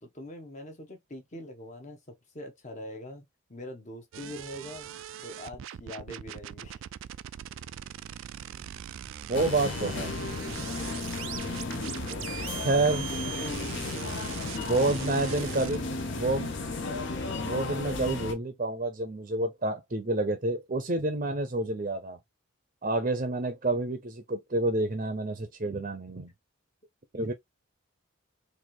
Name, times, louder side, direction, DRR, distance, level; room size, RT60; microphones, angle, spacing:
voice 1, 0.0-3.2 3.5-4.9 5.2-6.8 11.7-12.3 13.1-14.2 14.4-16.3, left 1 dB, 35° left, 1.0 m, -44 dB
sound 1, 4.1-15.8, right 11 dB, 65° right, 0.3 m, -41 dB
sound 2, 9.3-18.3, left 3 dB, 55° left, 0.8 m, -34 dB
voice 2, 9.3-10.1 12.6-13.1 14.7-15.8 16.1-16.5 17.4-22.2 22.8-26.3 27.1-27.3, right 2 dB, 35° right, 0.6 m, -28 dB
4.1 x 2.6 x 3.1 m
head